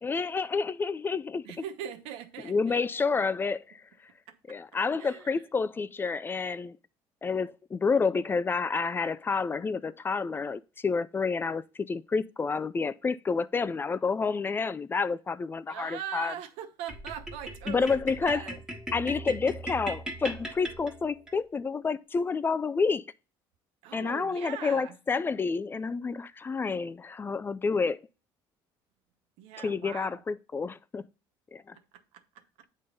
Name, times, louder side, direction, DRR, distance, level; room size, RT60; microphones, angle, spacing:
voice 1, 0.0-1.5 2.5-3.8 4.5-6.8 7.2-16.3 17.7-18.4 18.9-23.0 23.9-28.0 29.6-31.0 31.5-31.8, left 4 dB, 20° left, 0.3 m, -29 dB
voice 2, 1.4-2.8 4.3-4.6 5.0-5.4 15.7-18.6 23.8-25.0 29.4-30.2 31.7-32.4, right 9 dB, 90° right, 0.9 m, -41 dB
sound 1, 16.9-21.4, right 1 dB, 5° right, 1.5 m, -39 dB
8.4 x 3.6 x 3.9 m
cardioid pair, 115°, 10 cm